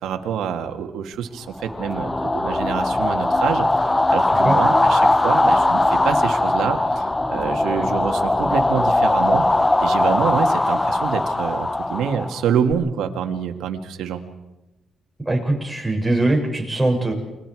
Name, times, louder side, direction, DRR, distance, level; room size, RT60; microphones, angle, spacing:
voice 1, 0.0-9.5 9.8-14.2, right 8 dB, 80° right, 5 dB, 1.9 m, -26 dB
sound 1, 1.6-12.7, left 2 dB, 15° left, 0.9 m, -20 dB
voice 2, 15.3-17.1, right 2 dB, 5° right, 0 dB, 6.6 m, -21 dB
29.0 x 22.0 x 4.8 m, 1.0 s
cardioid pair, 90°, 0 cm